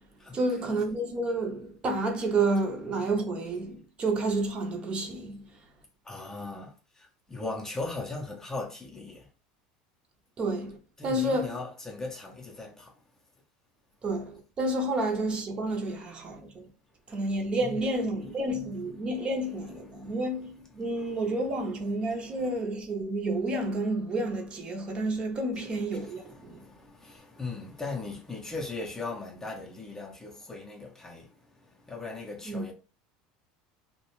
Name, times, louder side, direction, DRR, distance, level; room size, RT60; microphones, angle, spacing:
voice 1, 0.3-5.4 10.4-10.8 11.0-11.5 14.0-16.7 17.1-26.6 32.5-32.6, right 2 dB, 30° right, 0.6 m, -30 dB
voice 2, 6.0-9.3 11.0-13.0 17.6-17.8 19.9-20.2 21.1-21.4 22.0-22.5 25.9-32.7, left 3 dB, 15° left, 0.5 m, -39 dB
2.3 x 2.1 x 3.0 m
supercardioid pair, 125°, 4 cm